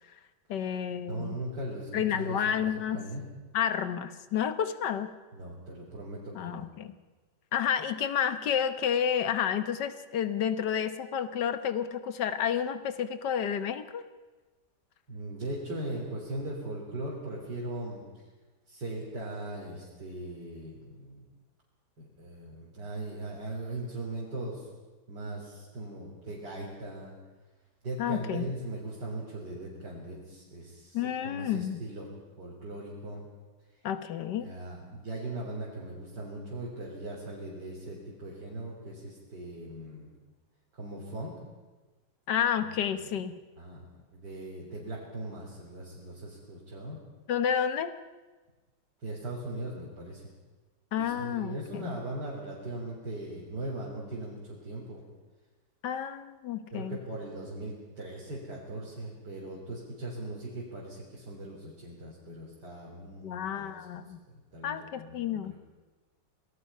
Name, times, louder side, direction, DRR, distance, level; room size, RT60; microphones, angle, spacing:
voice 1, 0.5-1.4 1.9-3.1 3.5-5.1 6.3-6.9 7.5-14.0 28.0-28.5 30.9-31.8 33.8-34.5 42.3-43.4 47.3-47.9 50.9-52.0 55.8-57.0 63.2-64.2 64.6-65.5, left 8 dB, 80° left, 11 dB, 1.7 m, -30 dB
voice 2, 1.0-2.7 2.9-3.3 5.3-6.7 15.1-18.0 18.7-21.3 22.0-24.7 25.1-27.1 27.8-32.1 32.4-33.2 34.4-40.2 40.7-41.3 42.5-43.1 43.6-43.8 44.1-47.0 49.0-50.2 51.0-55.0 56.7-65.6, right 1 dB, 75° right, -5 dB, 4.2 m, -39 dB
26.5 x 19.0 x 5.6 m, 1.3 s
omnidirectional pair, 1.8 m